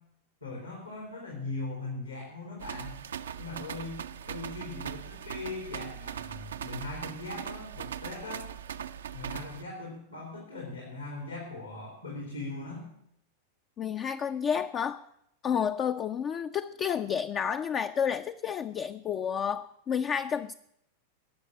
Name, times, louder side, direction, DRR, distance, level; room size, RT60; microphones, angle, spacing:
voice 1, 0.4-3.0 3.4-8.5 9.1-12.9, left 2 dB, 80° left, 3.5 m, -40 dB
sound 1, 2.6-9.6, right 8 dB, 65° right, 0.5 m, -40 dB
voice 2, 13.8-15.0 15.4-20.5, left 7 dB, 30° left, 0.5 m, -30 dB
18.5 x 7.2 x 8.9 m
figure-of-eight pair, 90°, 0 cm